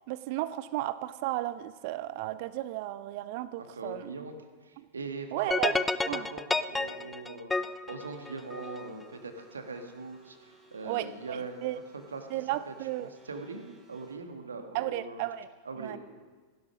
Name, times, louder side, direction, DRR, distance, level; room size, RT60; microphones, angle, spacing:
voice 1, 0.1-4.1 4.8-4.9 5.3-6.3 10.8-11.8 12.3-13.1 14.7-15.5 15.8-16.0, right 15 dB, 50° right, 15 dB, 0.5 m, -34 dB
voice 2, 3.6-4.3 4.6-12.3 12.7-15.2 15.6-16.0, right 3 dB, 70° right, 6 dB, 1.6 m, -41 dB
sound 1, 5.5-8.9, left 3 dB, 10° left, 0.4 m, -30 dB
sound 2, 8.0-14.2, right 2 dB, 20° right, 4.1 m, -61 dB
16.0 x 11.0 x 6.1 m, 1.4 s
figure-of-eight pair, 90°, 0 cm